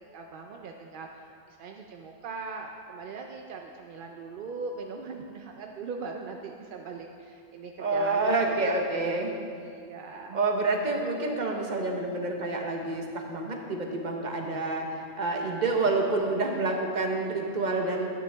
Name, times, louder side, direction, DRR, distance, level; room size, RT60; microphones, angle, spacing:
voice 1, 0.1-10.4, right 4 dB, 60° right, 2 dB, 0.5 m, -40 dB
voice 2, 7.8-9.3 10.3-18.1, right 3 dB, 40° right, 2 dB, 1.0 m, -28 dB
11.5 x 9.1 x 3.4 m, 2.4 s
omnidirectional pair, 1.4 m